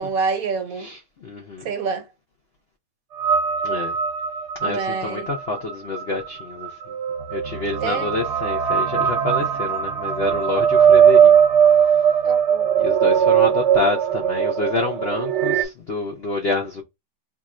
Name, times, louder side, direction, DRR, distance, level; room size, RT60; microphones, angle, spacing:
voice 1, 0.0-0.9 1.6-2.1 4.6-5.3 7.8-8.1 11.3-11.4 12.2-12.9, right 5 dB, 65° right, 1.1 m, -27 dB
voice 2, 0.8-1.7 3.6-4.0 4.6-7.0 7.3-11.3 11.9-12.0 12.8-16.8, left 3 dB, 70° left, 0.5 m, -27 dB
sound 1, 3.2-15.6, right 8 dB, 85° right, 0.6 m, -19 dB
2.9 x 2.4 x 4.1 m
omnidirectional pair, 1.9 m